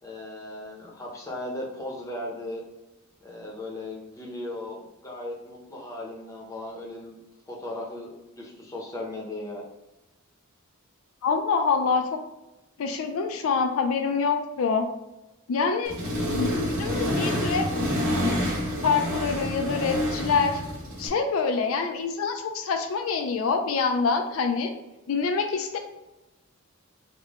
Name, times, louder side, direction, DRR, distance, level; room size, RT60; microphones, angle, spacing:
voice 1, 0.0-2.6 3.2-7.2 7.5-9.6 17.0-17.4, left 1 dB, 15° left, -2 dB, 0.7 m, -37 dB
voice 2, 11.2-12.2 12.8-14.9 15.5-16.0 16.3-17.6 18.8-20.6 21.0-24.7 25.1-25.8, left 5 dB, 70° left, 5 dB, 0.4 m, -26 dB
Accelerating revving vroom, 15.9-21.1, left 1 dB, 75° right, 1.4 m, -28 dB
3.6 x 2.2 x 3.5 m, 1.0 s
head